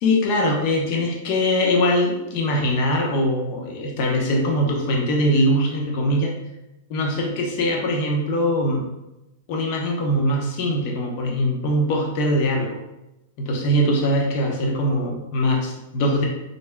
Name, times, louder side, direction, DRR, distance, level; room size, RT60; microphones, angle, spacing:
voice 1, 0.0-6.3 6.9-8.9 9.5-12.8 13.4-16.2, equal, 50° left, 0 dB, 0.8 m, -22 dB
3.8 x 3.5 x 2.2 m, 0.93 s
hypercardioid pair, 125°, 0 cm